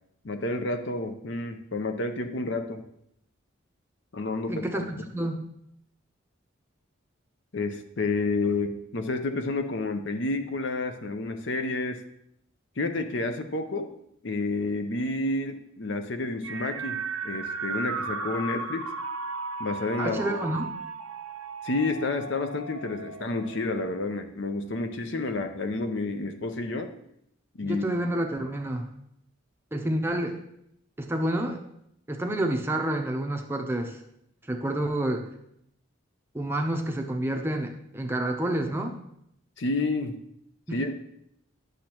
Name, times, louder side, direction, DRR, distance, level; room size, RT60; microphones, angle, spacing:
voice 1, 0.2-2.8 4.1-4.8 7.5-12.0 12.8-13.9 14.2-18.9 19.6-20.4 21.6-26.9 27.6-27.9 39.6-40.2 40.7-40.9, left 2 dB, 55° left, 7 dB, 0.6 m, -30 dB
voice 2, 4.5-5.5 20.0-20.7 27.6-28.9 29.7-30.4 31.0-31.6 32.1-34.0 34.5-35.3 36.3-38.9 40.7-40.8, right 1 dB, 10° right, 3 dB, 0.6 m, -29 dB
sound 1, 16.4-24.0, right 3 dB, 85° right, 0.7 m, -35 dB
10.0 x 6.4 x 3.0 m, 0.75 s
head